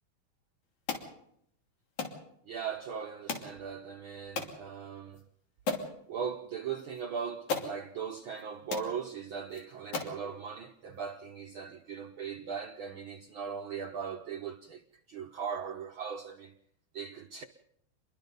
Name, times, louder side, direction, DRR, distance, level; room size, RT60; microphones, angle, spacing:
sound 1, 0.9-1.1 2.0-2.2 3.3-3.5 4.4-4.6 5.1-5.2 5.7-5.9 7.0-7.1 7.5-7.7 8.4-8.5 8.7-8.9 9.5-9.6 9.9-10.2, left 4 dB, 85° left, 4.2 m, -34 dB
voice 1, 2.4-5.2 6.1-16.5 16.9-17.4, right 6 dB, 65° right, 1.2 m, -39 dB
29.0 x 23.0 x 4.0 m
omnidirectional pair, 3.3 m